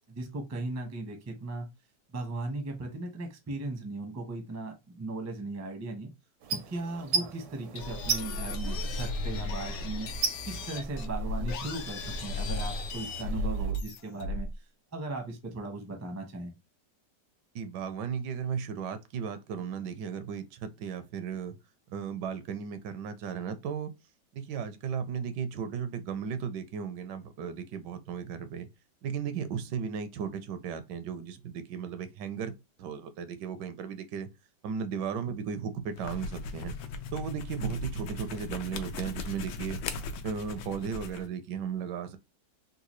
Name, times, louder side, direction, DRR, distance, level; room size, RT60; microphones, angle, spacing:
voice 1, 0.1-1.7 2.1-6.1 6.5-10.1 10.5-14.5 14.9-16.5, right 2 dB, 20° right, 0.4 m, -37 dB
sound 1, 6.4-13.7, right 6 dB, 70° right, 0.7 m, -37 dB
sound 2, 7.8-14.6, left 1 dB, 70° left, 0.9 m, -34 dB
voice 2, 17.5-21.6 21.9-23.9 24.3-28.7 29.0-34.3 34.6-36.7 37.1-39.8 40.2-42.2, right 7 dB, 85° right, 1.3 m, -35 dB
sound 3, 35.9-41.3, left 4 dB, 85° left, 1.2 m, -38 dB
3.8 x 2.3 x 3.0 m
omnidirectional pair, 1.8 m